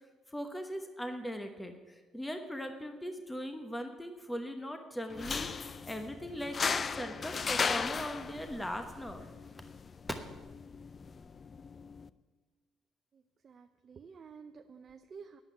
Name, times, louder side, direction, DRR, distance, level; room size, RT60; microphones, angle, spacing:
voice 1, 0.3-9.2, equal, 10° left, 5 dB, 1.0 m, -40 dB
sound 1, 5.1-12.1, left 5 dB, 40° left, 0.4 m, -37 dB
voice 2, 13.4-15.4, right 5 dB, 45° right, 6 dB, 0.6 m, -51 dB
9.6 x 8.0 x 9.3 m, 1.4 s
supercardioid pair, 80°, 0 cm